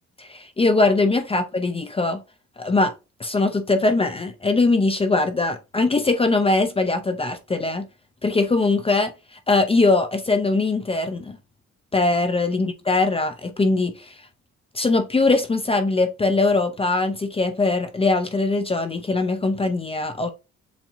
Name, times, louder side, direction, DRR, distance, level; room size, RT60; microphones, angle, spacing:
voice 1, 0.2-2.2 2.6-2.9 3.2-7.9 8.2-9.1 9.5-11.4 11.9-14.2 14.7-20.3, left 3 dB, 20° left, 0.5 m, -21 dB
7.1 x 2.8 x 2.5 m
cardioid pair, 130°, 30 cm